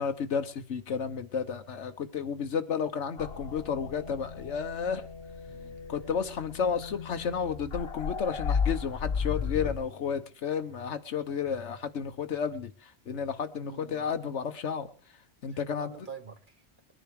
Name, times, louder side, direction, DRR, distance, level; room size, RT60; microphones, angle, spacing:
voice 1, 0.0-5.1 5.9-12.7 13.1-14.9 15.4-15.9, left 6 dB, 85° left, 8 dB, 1.3 m, -32 dB
sound 1, 3.2-9.7, left 6 dB, 60° left, 1.5 m, -34 dB
voice 2, 5.5-5.8 13.5-14.1 15.5-16.6, right 6 dB, 50° right, 9 dB, 1.4 m, -47 dB
21.5 x 10.5 x 4.7 m, 0.36 s
omnidirectional pair, 1.2 m